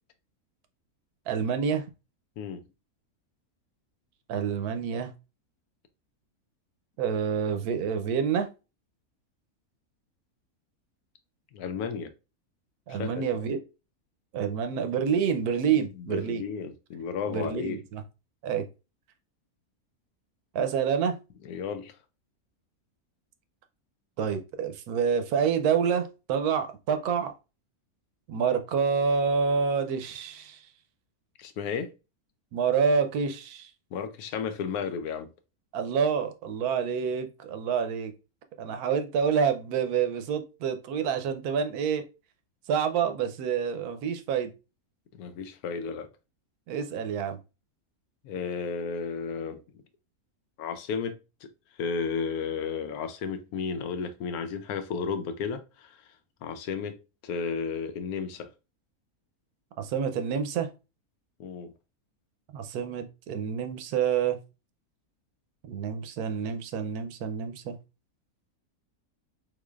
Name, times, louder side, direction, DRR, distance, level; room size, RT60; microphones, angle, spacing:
voice 1, 1.3-1.8 4.3-5.1 7.0-8.5 12.9-13.6 14.3-16.4 17.3-18.0 18.4-18.6 20.5-21.2 24.2-27.3 28.3-30.6 32.5-33.7 35.7-38.1 38.6-42.0 42.7-44.5 46.7-47.4 59.8-60.7 62.5-64.4 65.7-67.7, right 6 dB, 85° right, 1.1 m, -27 dB
voice 2, 11.5-12.1 12.9-13.2 15.7-17.8 21.4-21.9 31.4-31.9 33.9-35.3 45.1-46.1 48.2-49.6 50.6-51.5 51.8-55.9 56.4-57.0 57.2-58.5 61.4-61.7, left 6 dB, 85° left, 1.1 m, -33 dB
3.7 x 3.1 x 2.3 m
omnidirectional pair, 1.6 m